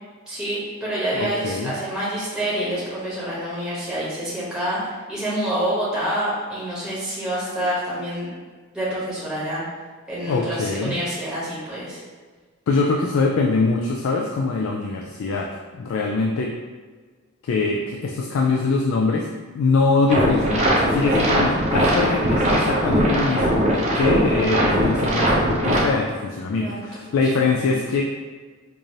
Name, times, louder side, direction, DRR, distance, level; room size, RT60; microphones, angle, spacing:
voice 1, 0.3-8.3 8.7-9.6 10.1-12.0 26.6-27.8, right 1 dB, 5° right, -9 dB, 1.0 m, -27 dB
voice 2, 1.1-1.7 10.3-11.0 12.7-16.5 17.4-19.3 19.5-28.0, left 3 dB, 65° left, 0 dB, 0.3 m, -23 dB
sound 1, 20.1-25.8, equal, 35° right, 0.5 m, -20 dB
4.6 x 2.5 x 2.7 m, 1.5 s
head